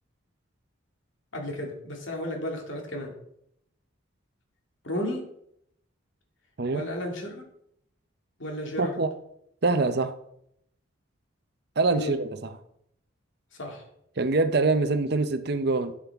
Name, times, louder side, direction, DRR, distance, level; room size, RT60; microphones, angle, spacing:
voice 1, 1.3-3.1 4.8-5.3 6.7-7.4 8.4-9.0 11.9-12.2 13.6-13.8, left 1 dB, 65° left, 1 dB, 2.3 m, -33 dB
voice 2, 8.8-9.1 9.6-10.1 11.8-12.5 14.2-15.9, right 3 dB, 50° right, 10 dB, 0.6 m, -24 dB
11.5 x 7.5 x 3.5 m, 0.73 s
head